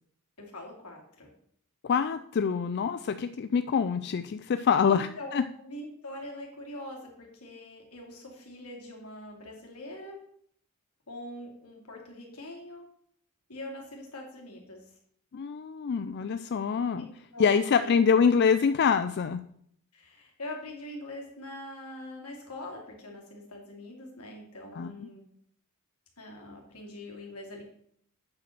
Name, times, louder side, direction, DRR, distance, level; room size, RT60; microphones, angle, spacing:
voice 1, 0.4-1.3 4.9-10.2 11.1-12.9 13.5-14.8 16.7-17.9 19.9-25.2 26.2-27.6, left 1 dB, 85° left, 0 dB, 2.6 m, -43 dB
voice 2, 1.9-5.4 15.3-17.1 17.4-19.4 24.8-24.9, left 6 dB, 50° left, 10 dB, 0.4 m, -25 dB
8.5 x 5.1 x 5.9 m, 0.65 s
head